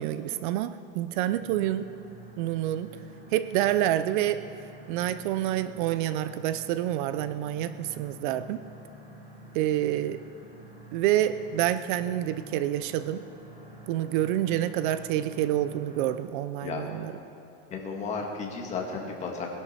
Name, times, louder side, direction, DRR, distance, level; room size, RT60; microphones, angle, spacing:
voice 1, 0.0-1.9 2.4-2.9 3.3-4.4 4.9-8.6 9.5-10.2 10.9-13.2 13.9-17.1, right 12 dB, 55° right, 12 dB, 0.5 m, -27 dB
sound 1, 1.3-16.2, right 1 dB, 20° right, 3.6 m, -49 dB
voice 2, 17.7-19.5, left 4 dB, 25° left, 0 dB, 1.7 m, -33 dB
21.0 x 11.0 x 4.3 m, 2.8 s
supercardioid pair, 170°, 30 cm